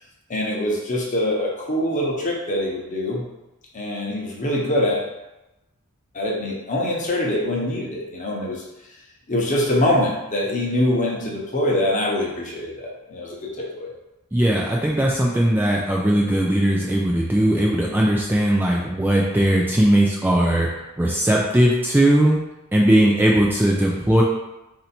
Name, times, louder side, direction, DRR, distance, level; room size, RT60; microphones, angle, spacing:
voice 1, 0.3-3.2 3.7-5.1 6.1-8.6 9.3-13.9, left 1 dB, 35° left, -2 dB, 0.9 m, -24 dB
voice 2, 14.3-20.7 21.0-22.4 22.7-24.2, right 1 dB, 10° right, -3 dB, 0.4 m, -19 dB
4.3 x 2.7 x 4.3 m, 0.95 s
head